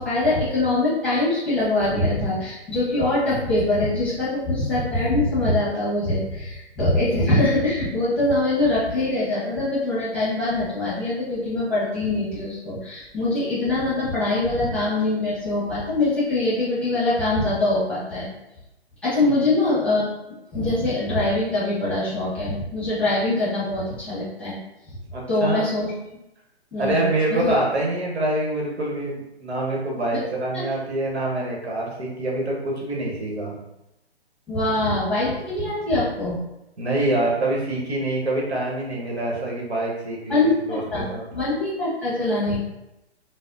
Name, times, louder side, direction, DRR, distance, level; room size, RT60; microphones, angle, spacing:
voice 1, 0.0-18.3 19.0-20.1 20.5-24.6 25.3-25.9 26.7-27.0 27.3-27.6 30.1-30.2 30.5-30.6 34.5-36.4 40.3-42.6, left 2 dB, 5° left, -11 dB, 0.8 m, -23 dB
voice 2, 25.1-25.7 26.8-33.6 35.7-35.8 36.8-41.3, right 1 dB, 90° right, -2 dB, 1.1 m, -25 dB
3.4 x 2.0 x 2.5 m, 0.91 s
hypercardioid pair, 135°, 32 cm